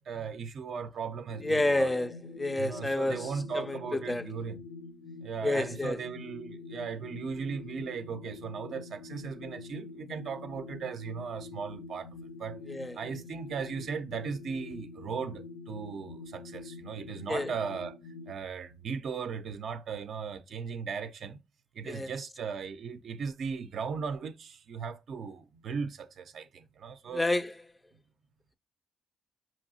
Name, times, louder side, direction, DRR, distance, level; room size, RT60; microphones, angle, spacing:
voice 1, 0.0-2.0 2.6-4.6 5.2-12.1 12.4-12.6 12.9-18.0 18.3-21.4 21.7-27.2, right 6 dB, 70° right, 0.4 m, -37 dB
sound 1, 1.3-18.3, left 3 dB, 75° left, 0.5 m, -46 dB
voice 2, 1.4-3.3 3.5-4.2 5.4-6.0 12.7-12.9 17.3-17.5 21.9-22.1 27.1-27.5, left 2 dB, 20° left, 0.3 m, -29 dB
4.8 x 3.0 x 2.6 m
supercardioid pair, 65°, 0 cm